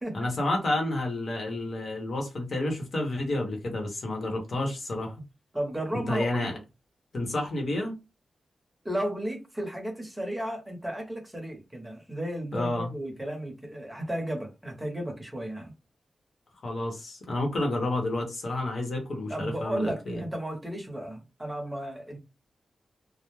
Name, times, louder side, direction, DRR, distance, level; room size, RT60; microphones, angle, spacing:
voice 1, 0.1-5.1 5.9-6.5 7.1-7.9 12.5-12.9 16.6-20.2, left 1 dB, 55° left, 0.8 m, -30 dB
voice 2, 5.5-6.6 8.8-15.7 19.3-22.2, right 1 dB, 10° right, 0.8 m, -34 dB
2.2 x 2.0 x 3.1 m
wide cardioid pair, 115°, 0 cm